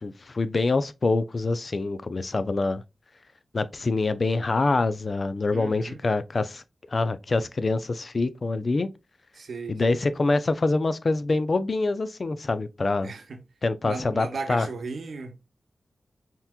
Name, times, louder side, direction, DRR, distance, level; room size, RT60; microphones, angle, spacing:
voice 1, 0.0-2.8 3.5-6.6 6.9-8.9 9.7-13.1 13.6-14.7, left 3 dB, 50° left, 0.5 m, -25 dB
voice 2, 5.5-6.0 9.3-10.0 13.0-13.4 13.8-15.3, right 4 dB, 80° right, 0.8 m, -36 dB
5.8 x 2.9 x 2.2 m
wide cardioid pair, 70°, 0 cm